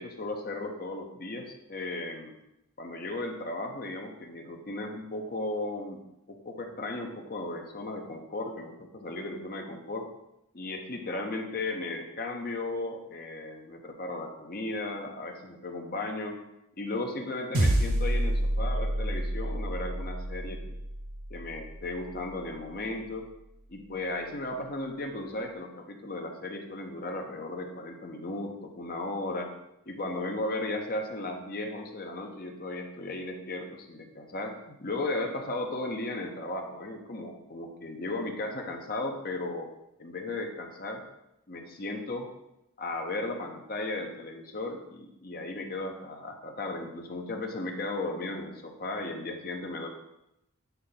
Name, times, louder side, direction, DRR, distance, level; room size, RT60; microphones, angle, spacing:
voice 1, 0.0-2.3 2.8-6.0 6.3-10.1 10.5-16.4 16.8-20.8 21.3-23.2 23.7-29.5 29.9-39.7 40.0-41.0 41.5-42.3 42.8-49.9, left 2 dB, 45° left, 3 dB, 0.8 m, -35 dB
sound 1, 17.5-22.1, right 1 dB, 85° right, 0.9 m, -29 dB
8.1 x 3.3 x 4.0 m, 0.85 s
head